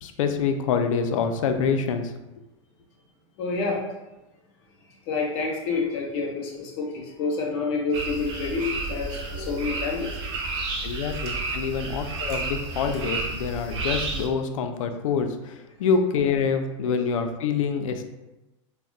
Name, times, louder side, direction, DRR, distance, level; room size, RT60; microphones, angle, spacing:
voice 1, 0.0-2.1 10.8-18.0, left 6 dB, 85° left, 7 dB, 0.4 m, -26 dB
voice 2, 3.4-3.8 5.1-10.1, left 4 dB, 45° left, 0 dB, 0.7 m, -28 dB
sound 1, 7.9-14.3, right 3 dB, 55° right, 0.5 m, -31 dB
2.2 x 2.1 x 3.7 m, 1.0 s
supercardioid pair, 150°, 16 cm